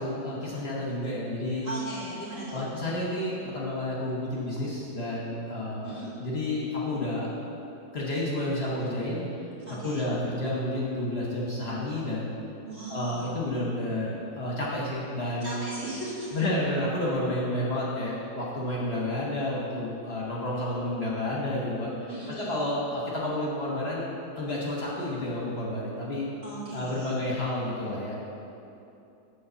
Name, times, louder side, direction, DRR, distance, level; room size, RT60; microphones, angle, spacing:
voice 1, 0.0-1.7 2.5-5.9 6.2-7.3 7.9-9.2 9.7-12.4 12.9-15.6 16.3-21.9 22.3-24.1 24.4-26.2 26.7-28.2, left 1 dB, 45° left, -5 dB, 1.2 m, -30 dB
voice 2, 1.6-2.6 5.8-6.1 9.7-10.1 12.6-13.3 15.4-16.4 22.1-22.6 26.4-27.2, right 2 dB, 55° right, -9 dB, 2.7 m, -38 dB
8.4 x 4.1 x 6.8 m, 2.8 s
omnidirectional pair, 1.7 m